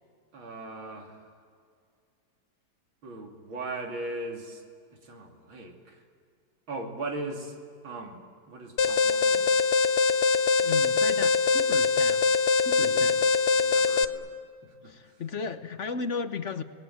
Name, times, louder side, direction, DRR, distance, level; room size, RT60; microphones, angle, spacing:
voice 1, 0.3-1.4 3.0-4.6 5.0-6.0 6.7-7.6 7.8-8.2 8.5-9.5 12.8-13.1 13.5-14.3 14.6-15.2, right 2 dB, 85° right, 2 dB, 3.7 m, -39 dB
Alarm, 8.8-14.0, left 5 dB, 70° left, 0.5 m, -23 dB
voice 2, 10.6-12.3 12.6-13.3 14.8-16.6, left 5 dB, 50° left, 10 dB, 1.0 m, -35 dB
29.5 x 20.5 x 9.3 m, 2.2 s
omnidirectional pair, 2.1 m